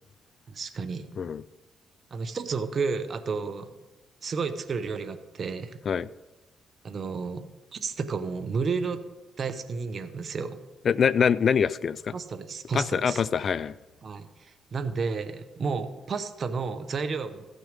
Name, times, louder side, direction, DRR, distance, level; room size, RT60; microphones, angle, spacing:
voice 1, 0.5-1.0 2.1-3.7 4.2-5.8 6.8-9.0 9.4-10.6 12.1-13.2 14.0-17.5, right 5 dB, 45° right, 8 dB, 0.8 m, -32 dB
voice 2, 10.9-12.1 12.7-13.7, left 7 dB, 50° left, 20 dB, 0.3 m, -24 dB
15.0 x 6.3 x 5.1 m, 1.1 s
cardioid pair, 90°, 0 cm